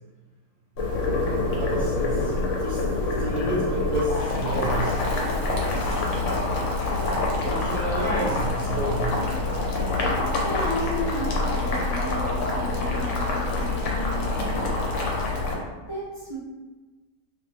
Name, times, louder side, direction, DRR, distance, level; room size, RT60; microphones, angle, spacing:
Boiling, 0.8-15.5, left 2 dB, 70° left, 0.9 m, -26 dB
voice 1, 1.6-2.3 2.6-2.8 3.2-5.0 5.7-6.1 7.4-9.2, right 1 dB, 55° right, -7 dB, 0.4 m, -30 dB
voice 2, 10.4-14.7 15.9-16.4, equal, 30° left, -10 dB, 0.6 m, -33 dB
2.7 x 2.6 x 3.0 m, 1.2 s
omnidirectional pair, 1.4 m